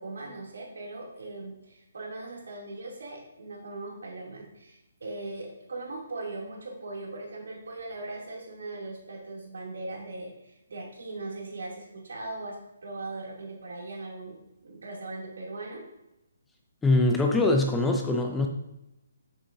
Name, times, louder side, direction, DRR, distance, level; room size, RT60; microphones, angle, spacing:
voice 1, 0.0-14.4 14.6-15.8, right 2 dB, 80° right, -2 dB, 2.6 m, -39 dB
voice 2, 16.8-18.5, left 2 dB, 5° left, 2 dB, 0.4 m, -23 dB
7.4 x 6.7 x 2.6 m, 0.89 s
hypercardioid pair, 170°, 0 cm